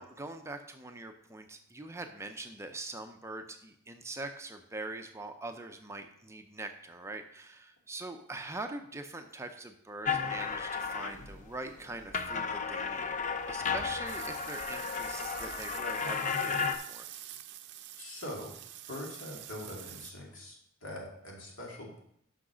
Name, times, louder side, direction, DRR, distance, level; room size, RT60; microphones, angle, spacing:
voice 1, 0.0-13.1 13.5-17.1, right 2 dB, 15° right, 5 dB, 0.5 m, -43 dB
sound 1, 10.0-11.5 11.9-16.7, left 5 dB, 35° left, 0.6 m, -34 dB
sound 2, 14.1-20.1, right 12 dB, 60° right, 0.5 m, -47 dB
voice 2, 18.0-18.6 18.9-22.0, left 1 dB, 70° left, -2 dB, 2.5 m, -43 dB
6.2 x 5.8 x 6.2 m, 0.70 s
head